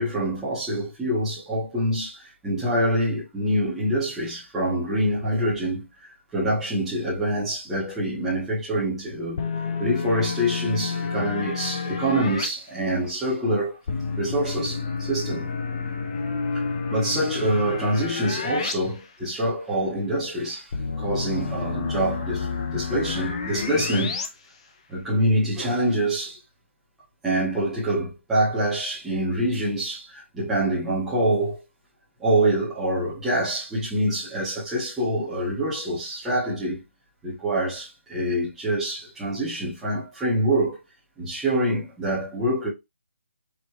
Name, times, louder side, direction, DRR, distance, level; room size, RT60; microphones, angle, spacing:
voice 1, 0.0-5.9 6.3-9.4 9.8-13.8 14.2-15.5 16.9-20.7 21.0-22.5 22.7-24.2 24.9-26.4 27.2-31.6 32.2-36.8 37.2-40.8 41.2-42.7, right 1 dB, 5° right, 1.4 m, -25 dB
sound 1, 9.4-12.5 13.9-18.7 19.1-19.2 20.7-24.3, left 5 dB, 25° left, 0.5 m, -29 dB
4.9 x 3.2 x 3.1 m
hypercardioid pair, 170°, 7 cm